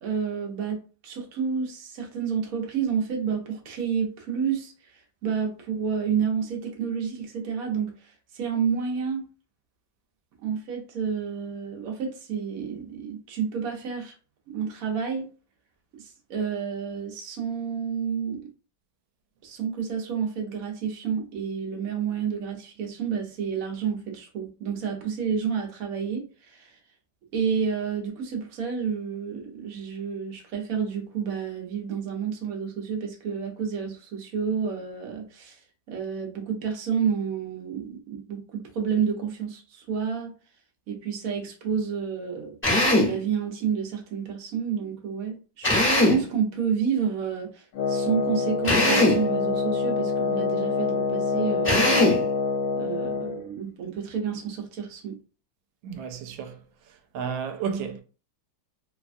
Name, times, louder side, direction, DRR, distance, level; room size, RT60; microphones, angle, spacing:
voice 1, 0.0-9.2 10.4-14.1 14.5-15.3 15.9-18.5 19.4-26.8 27.3-35.6 35.9-40.3 40.9-42.6 43.0-51.9 52.8-55.2, right 7 dB, 60° right, 1.0 m, -30 dB
Drill, 42.6-43.2 45.6-46.3 48.6-49.3 51.6-52.3, left 1 dB, 10° left, 0.9 m, -20 dB
Wind instrument woodwind instrument, 47.7-53.4, left 4 dB, 80° left, 1.3 m, -26 dB
voice 2, 55.8-56.6 57.1-58.0, right 6 dB, 85° right, 1.3 m, -32 dB
3.2 x 2.2 x 2.5 m
omnidirectional pair, 2.0 m